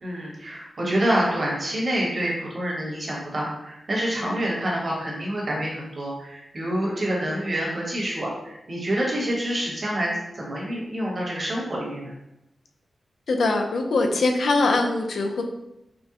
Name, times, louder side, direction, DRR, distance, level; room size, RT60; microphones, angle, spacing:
voice 1, 0.0-12.1, right 1 dB, 45° right, -4 dB, 1.3 m, -27 dB
voice 2, 13.3-15.4, left 3 dB, 80° left, 3 dB, 0.5 m, -22 dB
5.2 x 2.2 x 2.9 m, 0.86 s
wide cardioid pair, 95°, 0 cm